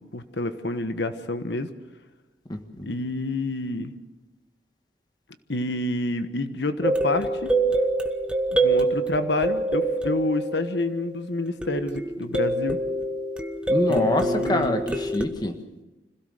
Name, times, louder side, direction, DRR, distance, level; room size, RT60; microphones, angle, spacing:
voice 1, 0.0-1.7 2.8-3.9 5.5-7.5 8.5-12.8 13.9-14.8, left 2 dB, 85° left, 10 dB, 1.3 m, -28 dB
voice 2, 2.5-2.9 13.7-15.5, left 1 dB, 25° left, 6 dB, 1.6 m, -26 dB
sound 1, 6.8-11.1 11.6-15.2, right 2 dB, 5° right, 1.0 m, -25 dB
26.0 x 16.5 x 6.7 m, 1.1 s
head